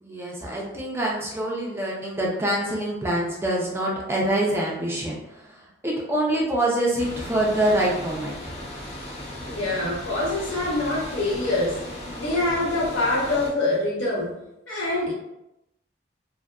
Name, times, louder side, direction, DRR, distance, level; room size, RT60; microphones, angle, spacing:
voice 1, 0.0-8.6, right 1 dB, 15° right, -3 dB, 0.4 m, -25 dB
sound 1, 7.0-13.5, left 1 dB, 30° left, 0.6 m, -36 dB
voice 2, 9.4-11.8 12.2-14.3 14.7-15.1, left 2 dB, 85° left, -6 dB, 1.0 m, -25 dB
2.7 x 2.4 x 2.2 m, 0.88 s
head